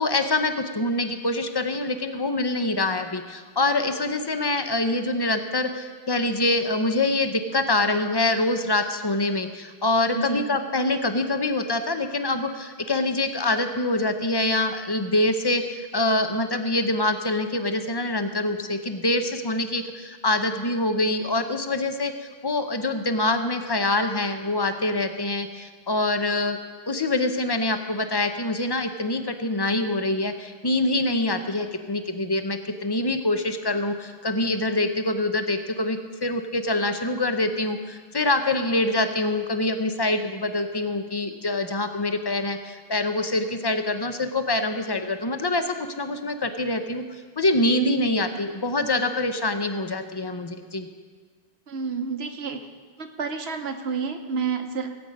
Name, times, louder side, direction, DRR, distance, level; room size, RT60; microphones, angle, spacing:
voice 1, 0.0-26.6 26.9-47.0 47.4-50.9, left 2 dB, 25° left, 8 dB, 0.7 m, -25 dB
voice 2, 10.1-10.4 51.7-52.6 53.0-54.9, right 5 dB, 90° right, 6 dB, 1.3 m, -29 dB
17.0 x 8.5 x 5.3 m, 1.5 s
omnidirectional pair, 1.0 m